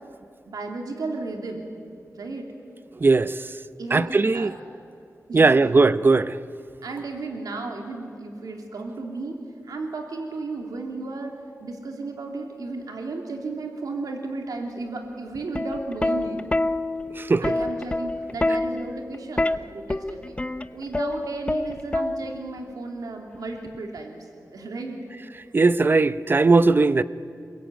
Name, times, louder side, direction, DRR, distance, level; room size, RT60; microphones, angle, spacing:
voice 1, 0.5-1.6 2.1-2.5 3.8-4.5 5.3-5.9 6.8-16.4 17.4-19.5 19.7-20.4 20.7-25.0 25.4-25.5, right 3 dB, 85° right, 2.8 m, -34 dB
voice 2, 3.0-3.3 3.9-4.5 5.3-6.4 17.2-17.4 25.5-27.0, right 3 dB, 35° right, 0.7 m, -18 dB
Plucked string instrument, 15.4-22.6 23.7-24.0, left 2 dB, 20° left, 0.8 m, -27 dB
28.0 x 22.0 x 9.2 m
wide cardioid pair, 110°, 6 cm